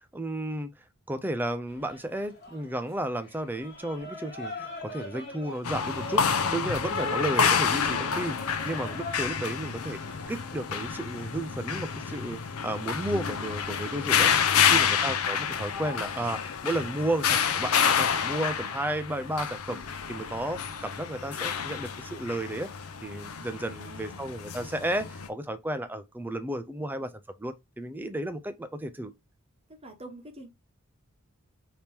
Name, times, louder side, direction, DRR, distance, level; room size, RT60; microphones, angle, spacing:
voice 1, 0.1-0.7 1.1-6.2 6.5-8.4 8.6-10.0 10.3-19.8 20.1-22.7 23.0-27.1 27.4-29.1, right 1 dB, 10° right, 0.4 m, -33 dB
sound 1, 1.7-20.5, left 2 dB, 50° left, 1.2 m, -45 dB
sound 2, 5.6-25.3, left 7 dB, 80° left, 0.6 m, -28 dB
voice 2, 23.6-24.2 29.7-30.5, right 2 dB, 25° right, 0.9 m, -46 dB
3.4 x 2.9 x 4.3 m
head